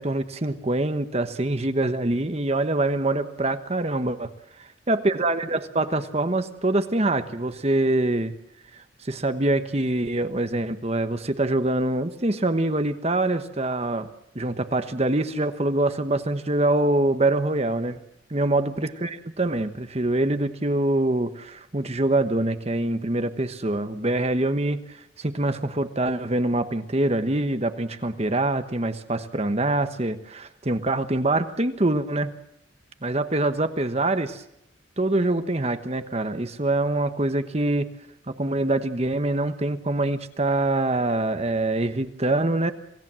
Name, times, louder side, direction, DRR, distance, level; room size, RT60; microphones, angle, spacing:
voice 1, 0.0-4.3 4.9-8.3 8.7-14.1 14.3-18.0 18.3-32.3 33.0-34.4 35.0-37.9 38.3-42.7, right 2 dB, 35° right, 9 dB, 1.2 m, -24 dB
28.0 x 18.0 x 7.6 m, 0.80 s
head